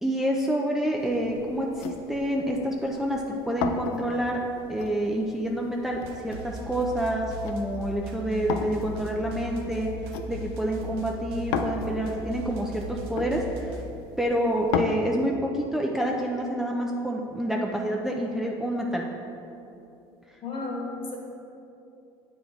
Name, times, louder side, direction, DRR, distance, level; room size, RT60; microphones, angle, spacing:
voice 1, 0.0-4.4 4.7-9.9 10.3-13.8 14.2-19.1, right 1 dB, 5° right, -1 dB, 0.6 m, -28 dB
sound 1, 1.0-14.9, left 7 dB, 85° left, 0.5 m, -37 dB
sound 2, 5.9-13.8, right 1 dB, 85° right, 0.7 m, -38 dB
voice 2, 20.4-21.2, left 3 dB, 45° left, -1 dB, 1.7 m, -33 dB
8.0 x 4.6 x 4.4 m, 2.8 s
supercardioid pair, 85°, 13 cm